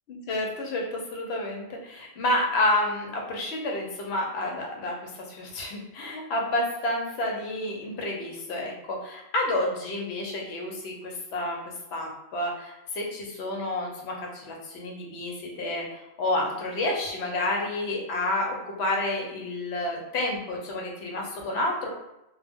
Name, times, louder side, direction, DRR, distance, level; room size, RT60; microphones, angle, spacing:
voice 1, 0.3-10.9 11.3-11.6 11.9-21.9, left 1 dB, 75° left, 0 dB, 0.9 m, -29 dB
2.2 x 2.1 x 3.4 m, 0.89 s
omnidirectional pair, 1.1 m